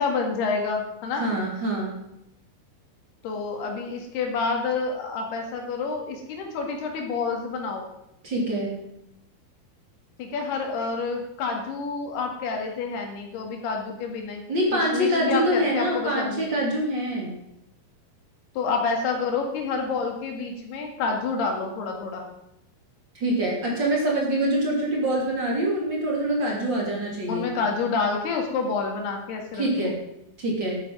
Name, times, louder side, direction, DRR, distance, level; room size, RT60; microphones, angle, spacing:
voice 1, 0.0-1.3 3.2-7.9 10.2-14.4 14.7-16.5 18.6-22.3 27.3-29.9, left 4 dB, 85° left, 2 dB, 4.1 m, -28 dB
voice 2, 1.2-2.0 8.2-8.8 14.5-17.3 23.1-27.5 29.5-30.0 30.4-30.8, right 1 dB, 30° right, -2 dB, 3.2 m, -25 dB
11.5 x 9.1 x 6.1 m, 0.84 s
omnidirectional pair, 4.5 m